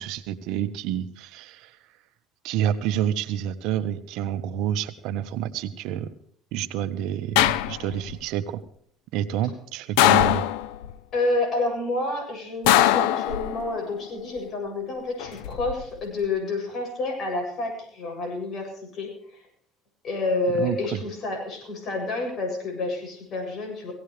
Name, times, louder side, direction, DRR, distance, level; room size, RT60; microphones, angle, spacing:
voice 1, 0.0-1.8 2.4-6.1 6.5-8.6 9.1-10.4 20.5-21.0, right 10 dB, 75° right, 10 dB, 1.3 m, -28 dB
sound 1, 7.4-8.1 10.0-10.9 12.7-13.8 15.2-15.7, left 13 dB, 85° left, 0.7 m, -21 dB
voice 2, 11.1-19.4 20.0-23.9, left 2 dB, 50° left, 2 dB, 7.8 m, -29 dB
18.0 x 17.5 x 3.4 m, 0.62 s
supercardioid pair, 100°, 0 cm